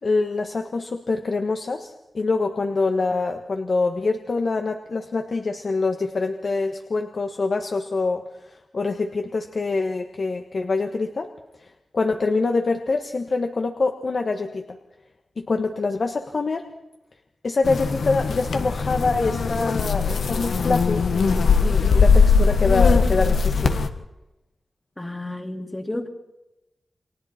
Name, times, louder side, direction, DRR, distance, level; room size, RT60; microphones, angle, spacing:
voice 1, 0.0-11.3 11.6-14.8 15.4-16.6 17.4-23.8, left 3 dB, 55° left, 4 dB, 1.6 m, -25 dB
sound 1, 17.6-23.9, left 5 dB, 85° left, 1.6 m, -20 dB
voice 2, 25.0-26.1, left 1 dB, 15° left, 4 dB, 2.6 m, -31 dB
29.5 x 24.0 x 4.4 m, 0.92 s
wide cardioid pair, 95°, 0 cm